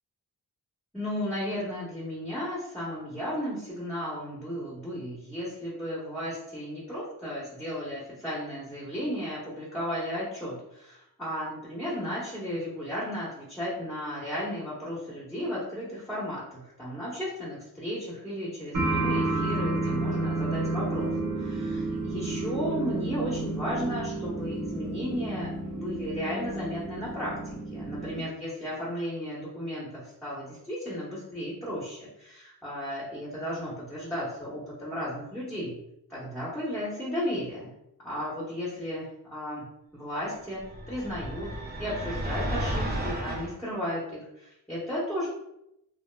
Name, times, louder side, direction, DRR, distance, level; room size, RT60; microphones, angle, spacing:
voice 1, 0.9-21.1 21.4-35.8 36.1-37.7 38.0-39.7 39.9-40.6 40.9-41.5 41.8-45.3, equal, 5° left, -9 dB, 0.8 m, -34 dB
sound 1, 18.7-28.2, right 2 dB, 50° right, 0.9 m, -31 dB
sound 2, 40.6-43.5, right 1 dB, 25° right, 0.5 m, -32 dB
2.8 x 2.4 x 2.2 m, 0.82 s
wide cardioid pair, 85°, 39 cm